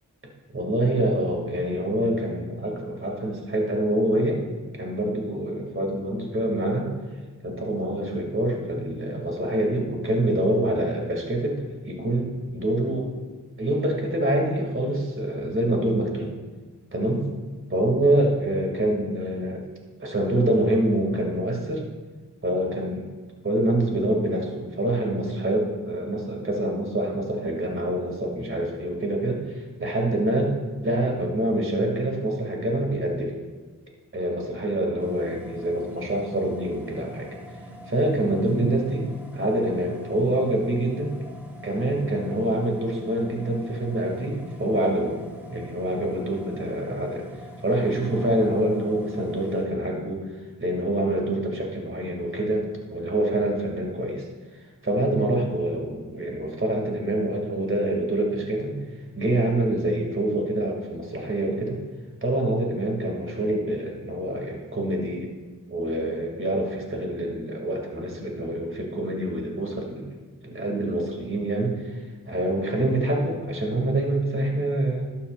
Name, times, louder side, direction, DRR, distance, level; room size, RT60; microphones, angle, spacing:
voice 1, 0.5-4.4 4.8-6.9 7.4-13.1 13.6-16.3 16.9-17.3 17.7-19.6 20.0-21.8 22.4-23.1 23.4-33.4 34.1-37.3 37.9-39.1 39.3-41.2 41.6-45.2 45.5-47.2 47.6-50.3 50.6-54.2 54.8-58.8 59.1-61.8 62.2-65.3 65.7-70.1 70.4-75.1, right 1 dB, 40° right, 0 dB, 2.3 m, -26 dB
sound 1, 35.0-49.6, left 1 dB, 5° right, 1.7 m, -43 dB
12.0 x 11.5 x 2.5 m, 1.3 s
wide cardioid pair, 75°, 32 cm